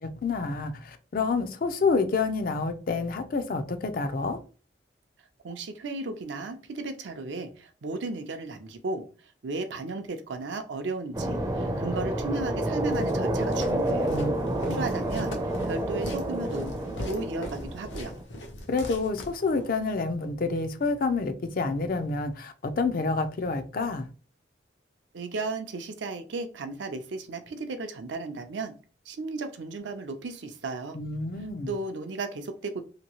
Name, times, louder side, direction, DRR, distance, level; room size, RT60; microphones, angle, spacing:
voice 1, 0.0-4.4 14.1-14.3 14.6-14.9 18.7-24.1 30.9-31.7, left 4 dB, 50° left, 0.4 m, -28 dB
voice 2, 5.4-14.2 14.7-15.4 15.6-16.7 17.0-18.1 25.1-28.7 29.1-31.0 31.7-32.8, right 3 dB, 75° right, 0.5 m, -34 dB
sound 1, 11.1-18.2, right 1 dB, 20° right, 0.4 m, -29 dB
Walk footsteps, 12.9-19.8, equal, 80° left, 0.8 m, -40 dB
2.9 x 2.6 x 2.9 m
head